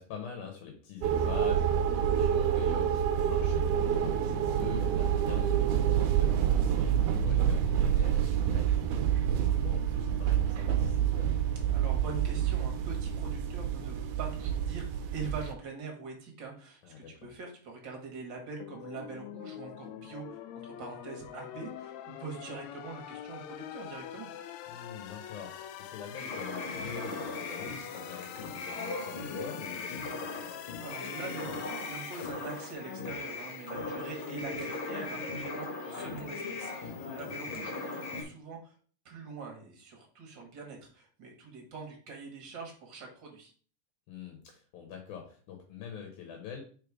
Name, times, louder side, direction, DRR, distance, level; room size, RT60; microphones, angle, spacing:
voice 1, 0.0-11.3 16.8-17.3 24.7-30.5 36.9-37.3 44.1-46.6, left 7 dB, 70° left, 3 dB, 2.4 m, -45 dB
sound 1, 1.0-15.5, right 9 dB, 80° right, 2.1 m, -28 dB
voice 2, 11.7-24.3 30.8-38.7 39.1-43.5, right 4 dB, 45° right, 0 dB, 1.8 m, -43 dB
sound 2, 18.6-32.7, left 10 dB, 90° left, 1.6 m, -45 dB
sound 3, 26.1-38.2, left 3 dB, 50° left, 1.9 m, -38 dB
5.2 x 4.4 x 4.8 m, 0.43 s
omnidirectional pair, 3.8 m